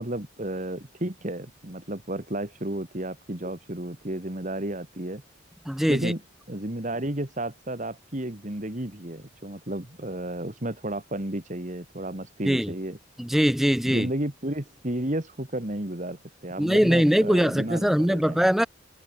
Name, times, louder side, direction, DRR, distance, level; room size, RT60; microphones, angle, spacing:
voice 1, 0.0-5.2 5.9-6.2 6.5-13.0 13.8-18.5, right 1 dB, 40° right, 2.4 m, -32 dB
voice 2, 5.7-6.1 12.5-12.7 13.2-14.1 16.6-18.7, equal, ahead, 0.3 m, -22 dB
head